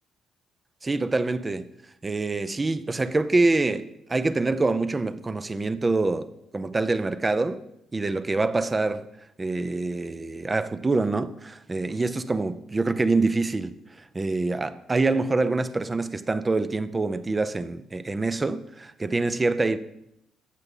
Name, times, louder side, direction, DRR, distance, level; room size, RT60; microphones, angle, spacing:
voice 1, 0.8-1.7 2.0-6.3 6.5-7.6 7.9-9.1 9.4-19.8, right 3 dB, 15° right, 0.5 m, -25 dB
15.0 x 6.2 x 5.4 m
cardioid pair, 180°, 0 cm